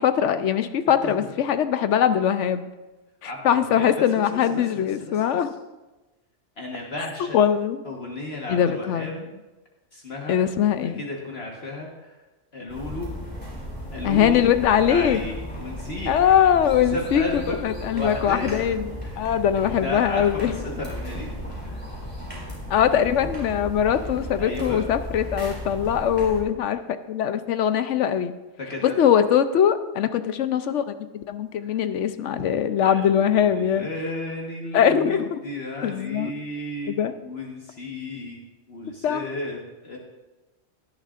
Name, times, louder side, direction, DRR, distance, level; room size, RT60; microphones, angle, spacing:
voice 1, 0.0-2.7 3.2-5.5 7.3-7.8 8.5-9.2 10.3-11.0 14.0-15.2 16.1-20.6 22.7-28.3 28.8-33.9 34.7-35.4 35.8-36.3 36.9-37.1 39.0-39.3, left 9 dB, 75° left, 11 dB, 0.9 m, -22 dB
voice 2, 3.2-5.1 6.6-7.4 7.8-9.1 9.9-10.4 10.8-12.1 12.5-13.1 13.9-14.5 14.8-16.1 16.7-17.6 17.9-18.7 19.0-19.3 19.7-21.3 21.6-22.0 24.4-24.8 28.6-29.1 31.6-31.8 32.8-36.9 37.2-38.4 38.7-40.0, left 2 dB, 55° left, -1 dB, 1.6 m, -33 dB
sound 1, 12.7-26.4, equal, 10° left, 3.3 m, -35 dB
17.0 x 10.0 x 2.5 m, 1.1 s
omnidirectional pair, 1.3 m